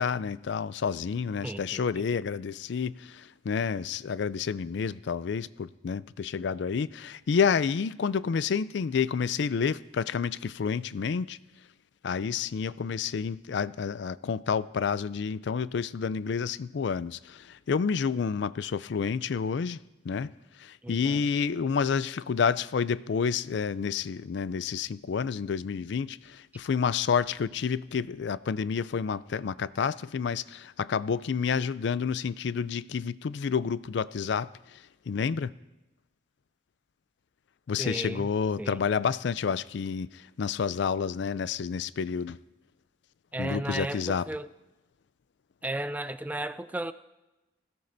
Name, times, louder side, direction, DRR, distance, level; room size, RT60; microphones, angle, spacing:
voice 1, 0.0-11.4 12.0-19.8 20.0-20.3 20.6-35.5 37.7-42.4 43.4-44.3, left 6 dB, 65° left, 0.4 m, -29 dB
voice 2, 1.4-2.1 20.8-21.2 37.8-38.3 38.6-38.8 43.3-44.5 45.6-46.9, right 1 dB, 10° right, 0.3 m, -34 dB
20.0 x 16.5 x 2.6 m
head